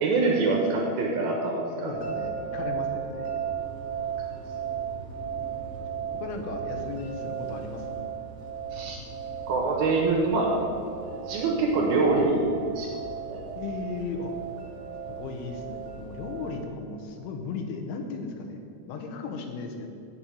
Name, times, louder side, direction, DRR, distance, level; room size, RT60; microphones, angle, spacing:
voice 1, 0.0-2.0 8.7-9.0 9.5-10.5 11.0-12.5 12.8-13.0 13.3-13.4, right 3 dB, 65° right, -1 dB, 2.7 m, -25 dB
voice 2, 1.8-3.4 5.6-5.7 6.1-8.1 13.6-14.3 15.1-18.6 18.9-19.9, left 4 dB, 85° left, 3 dB, 3.3 m, -36 dB
sound 1, 1.9-16.6, right 7 dB, 40° right, 2.9 m, -36 dB
8.4 x 7.5 x 8.4 m, 2.6 s
omnidirectional pair, 5.4 m